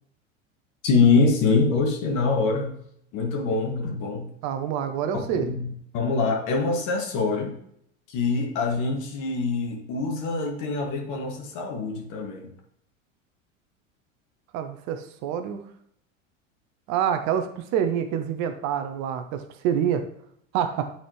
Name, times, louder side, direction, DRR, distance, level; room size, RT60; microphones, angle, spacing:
voice 1, 0.8-2.7 3.1-4.3 5.3-7.6 8.1-12.5, left 4 dB, 50° left, 1 dB, 1.7 m, -24 dB
voice 2, 4.4-5.5 14.5-15.6 16.9-20.1 20.5-20.9, right 9 dB, 45° right, 8 dB, 0.8 m, -27 dB
8.9 x 4.2 x 3.1 m, 0.70 s
hypercardioid pair, 80°, 39 cm